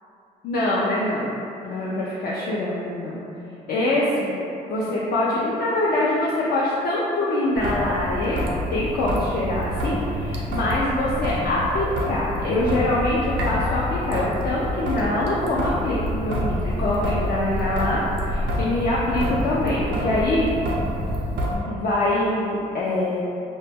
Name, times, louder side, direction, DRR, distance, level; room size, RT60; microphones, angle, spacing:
voice 1, 0.4-1.4 1.6-3.2 3.7-4.3 4.7-20.5 21.7-23.2, left 1 dB, 65° left, -7 dB, 0.4 m, -24 dB
Traffic noise roadway noise / Drip / Trickle dribble, 7.6-21.6, equal, 85° right, 0.4 m, -27 dB
2.1 x 2.1 x 3.2 m, 2.7 s
cardioid pair, 85°, 17 cm